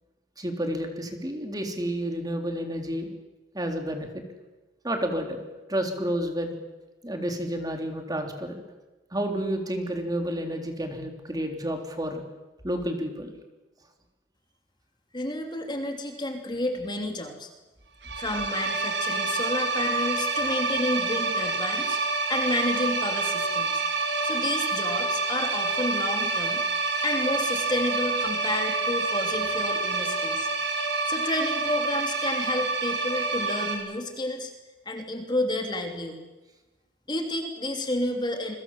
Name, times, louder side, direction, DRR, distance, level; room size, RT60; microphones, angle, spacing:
voice 1, 0.4-3.1 3.5-4.2 4.8-5.4 5.7-6.5 7.0-8.6 9.1-12.2 12.6-13.3, equal, 20° right, 4 dB, 3.6 m, -30 dB
voice 2, 15.1-17.5 18.2-22.0 22.3-23.8 24.2-26.6 27.0-30.5 31.1-34.5 34.8-36.2 37.1-38.6, left 1 dB, 25° left, 4 dB, 3.2 m, -30 dB
sound 1, 18.0-33.8, right 3 dB, 70° right, 6.6 m, -27 dB
28.5 x 23.0 x 7.6 m, 1.1 s
head